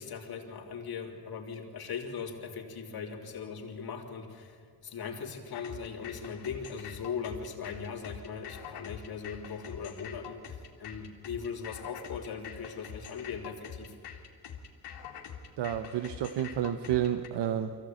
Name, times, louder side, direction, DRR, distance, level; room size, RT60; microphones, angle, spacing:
voice 1, 0.0-14.0, left 6 dB, 65° left, 0 dB, 3.4 m, -39 dB
sound 1, 5.5-17.3, left 7 dB, 90° left, 2.4 m, -45 dB
voice 2, 15.6-17.8, right 10 dB, 85° right, 10 dB, 1.0 m, -30 dB
23.5 x 16.0 x 9.0 m, 2.2 s
cardioid pair, 100°, 41 cm